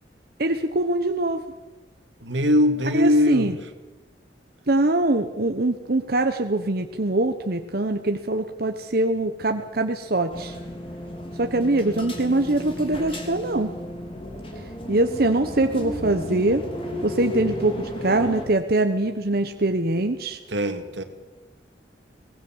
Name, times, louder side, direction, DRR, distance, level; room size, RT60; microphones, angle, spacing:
voice 1, 0.4-1.4 2.9-3.5 4.7-10.6 11.4-13.7 14.9-16.6 17.0-20.4, right 2 dB, 55° right, 6 dB, 1.1 m, -23 dB
voice 2, 2.2-3.6 20.5-21.0, left 1 dB, 90° right, 7 dB, 2.5 m, -21 dB
sound 1, 10.3-18.4, left 1 dB, 30° left, 3.5 m, -34 dB
23.0 x 19.5 x 7.4 m, 1.1 s
head